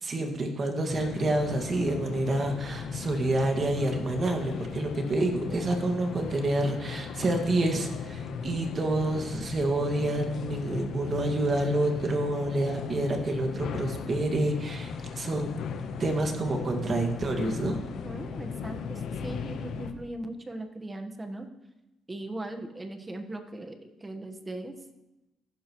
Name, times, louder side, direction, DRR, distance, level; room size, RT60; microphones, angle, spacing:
voice 1, 0.0-15.5 16.0-17.8, right 2 dB, 45° right, 3 dB, 2.0 m, -28 dB
sound 1, 0.9-19.9, left 6 dB, 75° left, 1.0 m, -37 dB
voice 2, 17.8-21.5 22.1-24.7, right 1 dB, 20° right, 6 dB, 1.3 m, -39 dB
14.5 x 11.5 x 3.1 m, 0.99 s
cardioid pair, 90°, 0 cm